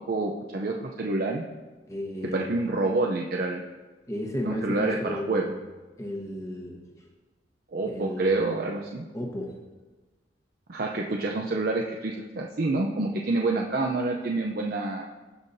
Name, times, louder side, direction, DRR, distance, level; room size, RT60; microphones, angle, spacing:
voice 1, 0.1-1.4 2.3-3.6 4.4-5.5 7.7-9.0 10.7-15.1, right 2 dB, 55° right, 1 dB, 0.6 m, -27 dB
voice 2, 1.9-2.8 4.1-5.6 6.0-7.1 7.8-8.4 9.1-9.6, left 1 dB, 20° left, 1 dB, 1.2 m, -34 dB
16.0 x 5.6 x 2.6 m, 1.2 s
head